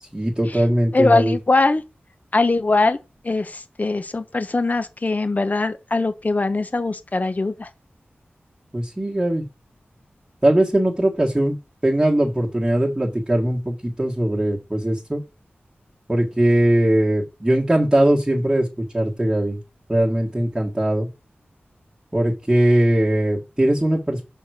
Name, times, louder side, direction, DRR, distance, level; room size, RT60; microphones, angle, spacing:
voice 1, 0.0-1.3 8.7-9.4 10.4-11.5 11.8-15.2 16.1-19.6 19.9-21.1 22.1-24.2, right 1 dB, 15° right, 1.6 m, -20 dB
voice 2, 0.9-1.8 2.3-3.0 3.2-7.7, left 3 dB, 40° left, 1.0 m, -21 dB
5.7 x 4.6 x 6.4 m
wide cardioid pair, 80°, 4 cm